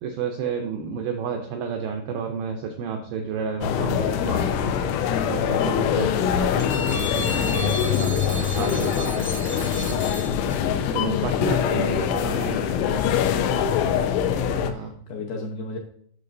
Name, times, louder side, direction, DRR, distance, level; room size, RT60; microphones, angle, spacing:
voice 1, 0.0-4.8 5.3-9.1 9.5-9.7 10.9-12.6 14.5-15.0, right 5 dB, 85° right, 4 dB, 2.2 m, -31 dB
sound 1, 3.6-14.7, left 8 dB, 90° left, 3.1 m, -23 dB
sound 2, 6.6-10.9, right 1 dB, 30° right, 0.7 m, -36 dB
voice 2, 8.7-9.1 11.7-14.0 14.6-15.8, left 4 dB, 75° left, 0 dB, 2.3 m, -34 dB
9.4 x 6.5 x 2.6 m, 0.62 s
omnidirectional pair, 5.4 m